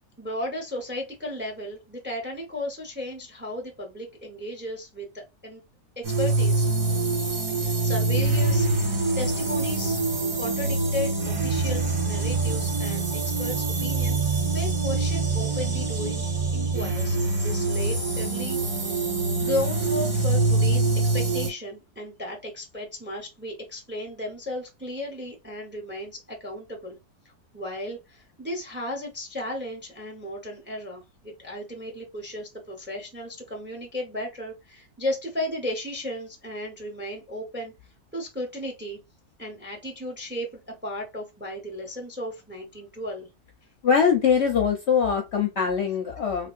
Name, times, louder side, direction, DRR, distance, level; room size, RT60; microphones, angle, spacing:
voice 1, 0.2-5.6 6.0-6.7 7.6-10.0 10.4-18.6 19.4-27.0 27.5-37.7 38.1-39.0 39.4-43.3, left 1 dB, 10° right, 0.7 m, -35 dB
sound 1, 6.0-21.5, right 3 dB, 85° right, 2.4 m, -25 dB
voice 2, 43.8-46.5, left 6 dB, 55° left, 0.8 m, -22 dB
3.4 x 3.1 x 2.5 m
omnidirectional pair, 1.6 m